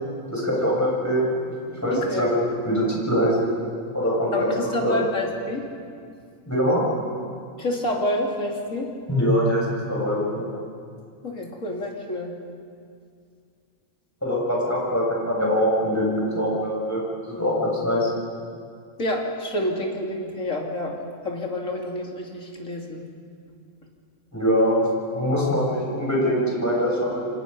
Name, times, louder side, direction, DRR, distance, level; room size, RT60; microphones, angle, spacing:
voice 1, 0.3-3.4 3.9-4.5 4.8-5.0 6.5-6.8 9.1-10.5 14.2-17.0 17.3-18.1 24.3-27.2, equal, 10° left, -5 dB, 7.1 m, -23 dB
voice 2, 1.9-2.3 4.3-5.7 7.6-8.9 11.2-12.3 19.0-21.0 21.2-23.0, left 1 dB, 80° left, -1 dB, 3.5 m, -28 dB
28.0 x 25.5 x 5.5 m, 2.3 s
omnidirectional pair, 1.3 m